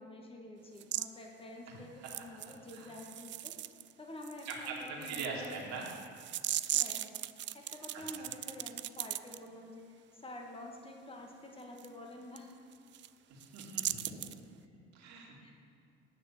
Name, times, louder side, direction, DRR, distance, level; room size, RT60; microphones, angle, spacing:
voice 1, 0.0-3.6 4.0-5.7 6.7-7.2 7.5-12.5 15.4-15.5, left 1 dB, 20° left, 0 dB, 1.8 m, -48 dB
sound 1, 0.8-1.1 2.0-3.9 4.2-9.4 11.8-11.9 12.4-12.5 12.7-13.1 13.4-14.4, right 13 dB, 40° right, 0.4 m, -38 dB
voice 2, 4.4-5.9 7.9-8.0 13.3-14.1 14.7-15.5, right 4 dB, 60° right, -2 dB, 2.6 m, -42 dB
10.5 x 6.7 x 7.3 m, 2.2 s
hypercardioid pair, 55°, 31 cm